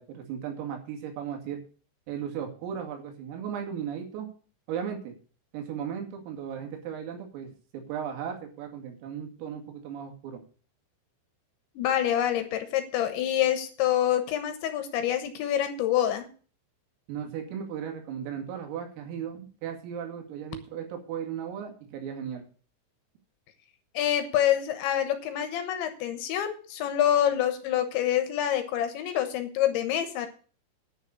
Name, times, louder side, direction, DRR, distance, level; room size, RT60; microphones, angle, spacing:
voice 1, 0.0-1.6 2.1-4.3 4.7-5.1 5.5-10.4 17.1-22.4, right 8 dB, 90° right, 3 dB, 5.0 m, -36 dB
voice 2, 11.8-16.3 23.9-30.3, left 11 dB, 70° left, 8 dB, 3.1 m, -26 dB
10.0 x 6.6 x 8.2 m, 0.40 s
omnidirectional pair, 5.9 m